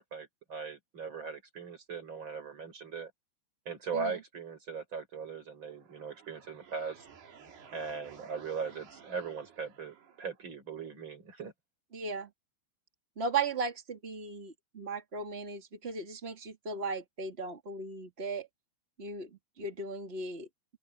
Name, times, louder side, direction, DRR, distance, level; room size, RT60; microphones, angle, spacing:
voice 1, 0.0-3.1 3.7-7.1 7.7-11.5, right 5 dB, 25° right, 5.2 m, -39 dB
sound 1, 5.5-10.5, right 7 dB, 55° right, 5.5 m, -55 dB
voice 2, 11.9-12.3 13.1-18.5 19.0-19.3 19.6-20.5, right 4 dB, 90° right, 0.5 m, -36 dB
open air
omnidirectional pair, 5.7 m